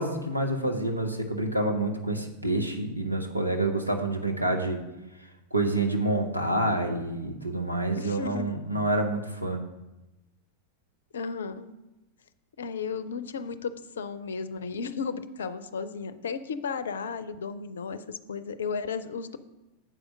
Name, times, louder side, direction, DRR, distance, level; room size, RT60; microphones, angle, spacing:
voice 1, 0.0-4.8 5.5-9.6, right 2 dB, 90° right, 3 dB, 1.0 m, -28 dB
voice 2, 7.9-8.6 11.1-11.7 12.6-19.4, left 5 dB, 65° left, 13 dB, 0.5 m, -34 dB
7.8 x 4.9 x 6.2 m, 1.0 s
figure-of-eight pair, 90°, 0 cm